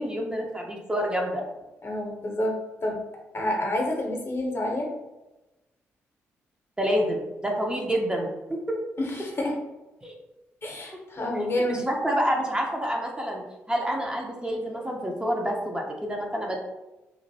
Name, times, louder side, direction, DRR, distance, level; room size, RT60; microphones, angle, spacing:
voice 1, 0.0-1.4 6.8-8.8 10.0-10.1 11.7-13.4 13.7-16.6, equal, 15° right, -1 dB, 0.7 m, -28 dB
voice 2, 1.8-2.5 2.8-3.0 3.3-4.9 9.0-9.6 10.6-11.9, left 1 dB, 40° left, 0 dB, 0.8 m, -28 dB
3.0 x 2.5 x 2.6 m, 1.0 s
hypercardioid pair, 40°, 6 cm